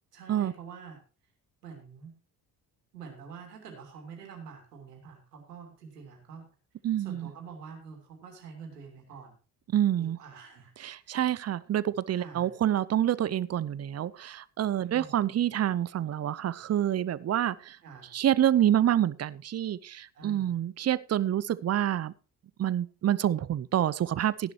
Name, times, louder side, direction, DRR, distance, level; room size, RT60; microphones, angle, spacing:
voice 1, 0.1-1.0 1.6-2.1 2.9-6.4 7.0-9.3 10.0-10.7 11.0-11.3 12.1-12.5 14.8-15.2 17.8-18.1 20.1-20.6, right 6 dB, 85° right, 3.0 m, -46 dB
voice 2, 6.8-7.3 9.7-10.2 10.8-17.8 18.1-22.1 22.6-24.5, right 11 dB, 35° right, 0.7 m, -27 dB
15.5 x 11.0 x 3.2 m
hypercardioid pair, 50°, 46 cm